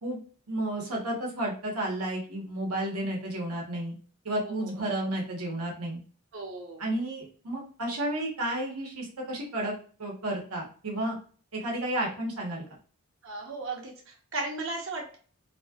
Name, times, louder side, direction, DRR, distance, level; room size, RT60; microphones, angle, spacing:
voice 1, 0.5-3.9 4.2-6.0 6.8-11.2 11.5-12.6, right 1 dB, 85° right, 0 dB, 1.0 m, -32 dB
voice 2, 4.4-4.8 6.3-6.8 13.2-15.2, right 3 dB, 60° right, 0 dB, 0.8 m, -36 dB
2.9 x 2.3 x 2.8 m, 0.42 s
head